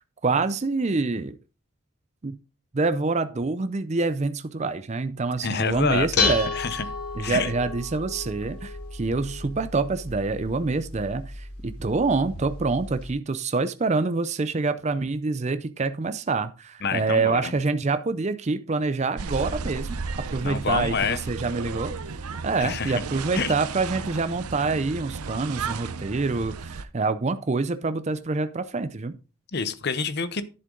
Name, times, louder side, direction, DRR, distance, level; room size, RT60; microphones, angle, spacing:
voice 1, 0.2-1.4 2.2-2.4 2.7-6.5 7.2-20.0 20.3-21.9 22.4-29.1, right 3 dB, 30° right, 11 dB, 0.5 m, -26 dB
voice 2, 5.4-6.9 7.2-7.5 16.8-17.5 20.4-21.2 22.6-23.0 23.3-23.5 29.5-30.4, left 5 dB, 45° left, 14 dB, 0.8 m, -27 dB
Dishes pots and pans, 5.7-13.1, left 3 dB, 85° left, 3.1 m, -33 dB
sound 1, 19.2-26.8, right 4 dB, 85° right, 0.6 m, -34 dB
10.5 x 7.4 x 3.8 m, 0.33 s
head